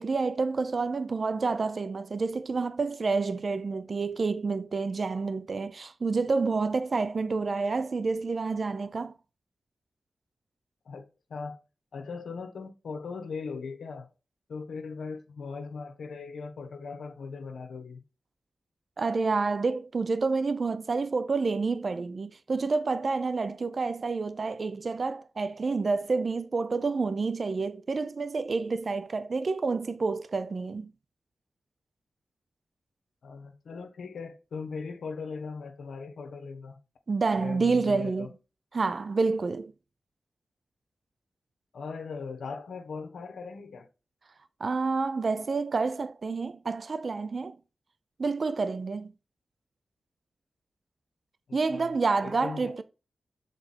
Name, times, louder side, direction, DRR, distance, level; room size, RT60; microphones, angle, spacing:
voice 1, 0.0-9.1 19.0-30.9 37.1-38.3 38.7-39.7 44.6-47.6 48.2-49.1 51.5-52.8, right 4 dB, 60° right, 0.5 m, -28 dB
voice 2, 11.9-14.1 14.5-18.0 33.2-36.8 37.4-38.3 41.7-43.9 51.5-52.0 52.2-52.7, left 4 dB, 85° left, 1.0 m, -39 dB
6.8 x 4.3 x 4.2 m
cardioid pair, 45°, 0 cm